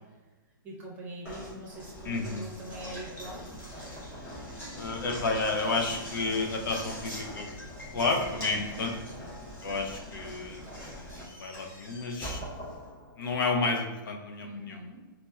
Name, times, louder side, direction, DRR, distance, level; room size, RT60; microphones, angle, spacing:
voice 1, 0.6-3.4 8.5-8.8 9.1-9.3 14.4-15.0, equal, 15° right, -5 dB, 0.6 m, -43 dB
Knock, 1.2-13.4, equal, 20° left, 1.1 m, -42 dB
voice 2, 2.0-2.5 4.7-7.5 7.9-8.9 9.6-10.6 11.0-12.4 13.2-14.8, left 3 dB, 65° left, 2 dB, 0.5 m, -31 dB
4.0 x 2.1 x 2.3 m, 1.2 s
hypercardioid pair, 155°, 12 cm